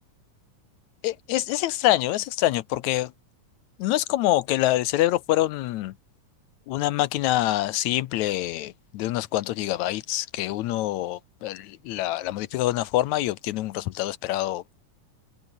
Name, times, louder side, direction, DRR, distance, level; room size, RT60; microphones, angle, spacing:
voice 1, 1.0-3.1 3.8-5.9 6.7-14.6, left 15 dB, 75° left, 1.9 m, -25 dB
omnidirectional pair, 3.8 m